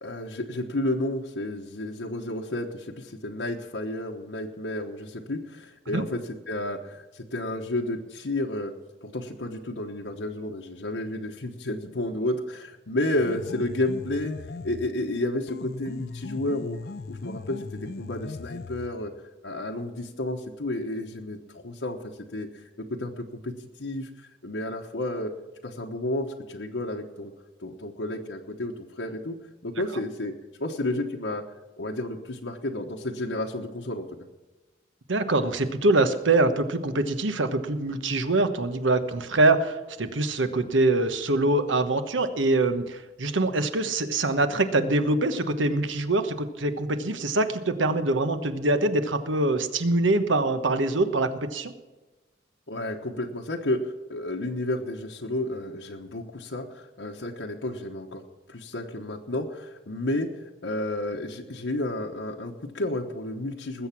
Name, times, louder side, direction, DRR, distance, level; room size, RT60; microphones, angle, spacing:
voice 1, 0.0-6.2 6.5-8.7 9.0-16.8 17.1-19.1 19.4-23.5 23.8-25.3 25.6-27.3 27.6-29.4 29.6-30.3 30.6-31.4 31.8-34.1 52.7-58.2 58.5-63.9, left 1 dB, 85° left, 0 dB, 1.2 m, -31 dB
sound 1, 13.2-15.0 15.5-19.0, left 3 dB, 55° left, 0.5 m, -38 dB
voice 2, 35.1-51.7, right 2 dB, 90° right, 10 dB, 1.2 m, -24 dB
20.0 x 8.0 x 6.0 m, 1.2 s
head